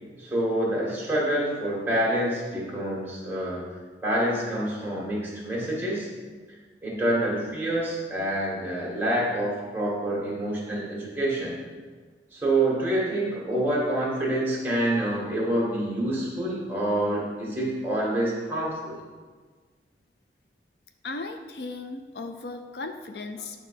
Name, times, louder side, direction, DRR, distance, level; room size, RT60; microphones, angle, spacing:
voice 1, 0.2-3.7 4.0-6.1 6.8-11.6 12.3-19.0, right 1 dB, 10° right, -5 dB, 1.9 m, -27 dB
voice 2, 21.0-23.6, left 3 dB, 65° left, 6 dB, 0.5 m, -36 dB
9.1 x 3.7 x 5.8 m, 1.4 s
head